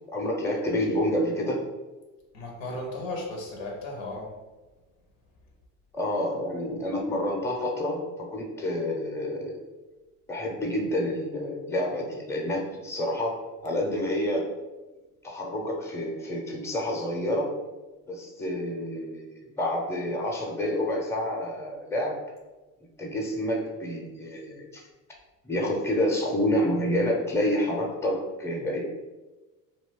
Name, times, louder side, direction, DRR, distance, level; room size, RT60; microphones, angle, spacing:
voice 1, 0.1-1.6 5.9-9.6 10.3-13.4 13.6-14.5 15.2-17.5 18.1-22.1 23.0-24.8 25.4-29.0, left 1 dB, 5° left, 0 dB, 0.7 m, -28 dB
voice 2, 2.3-4.3, left 2 dB, 80° left, -1 dB, 0.9 m, -35 dB
2.5 x 2.2 x 3.6 m, 1.2 s
hypercardioid pair, 75°, 39 cm